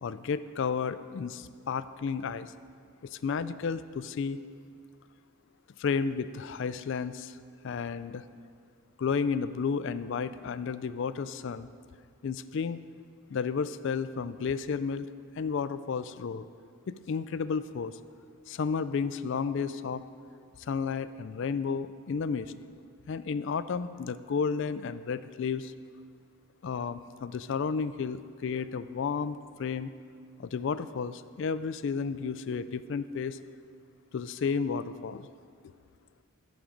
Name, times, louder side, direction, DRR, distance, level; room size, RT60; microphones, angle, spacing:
voice 1, 0.0-2.5 3.0-4.4 5.8-7.4 7.6-8.2 9.0-11.7 12.2-12.8 13.3-15.1 15.4-16.5 16.9-18.0 18.5-20.0 20.7-22.5 23.1-25.7 26.6-29.9 30.4-33.4 34.1-35.3, left 5 dB, 55° left, 14 dB, 0.3 m, -32 dB
14.5 x 6.1 x 5.1 m, 2.2 s
head